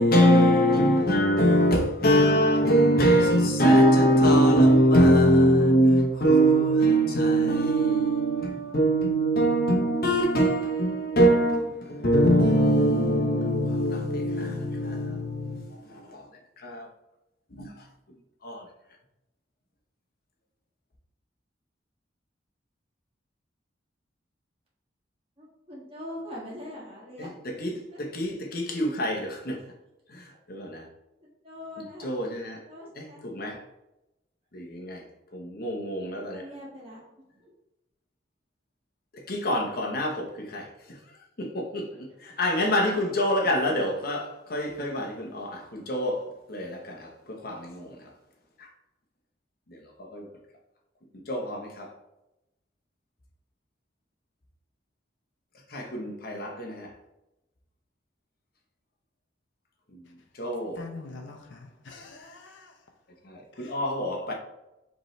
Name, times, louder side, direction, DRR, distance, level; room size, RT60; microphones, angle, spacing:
voice 1, 0.0-16.2 16.6-16.9 17.5-17.7 18.4-18.6 27.2-29.6 30.1-30.8 31.8-32.6 33.0-33.6 34.5-35.0 35.3-36.4 39.3-40.7 41.4-46.2 46.5-47.9 50.1-50.3 51.3-51.9 55.7-56.9 60.4-60.8 63.3-64.3, equal, 55° left, 1.0 m, -23 dB
voice 2, 25.7-27.3 27.9-28.0 31.4-32.1 32.7-33.2 36.3-37.0, left 1 dB, 30° right, 1.5 m, -41 dB
voice 3, 60.8-62.7 63.6-63.8, left 3 dB, 80° left, 0.6 m, -44 dB
5.1 x 3.3 x 3.1 m
head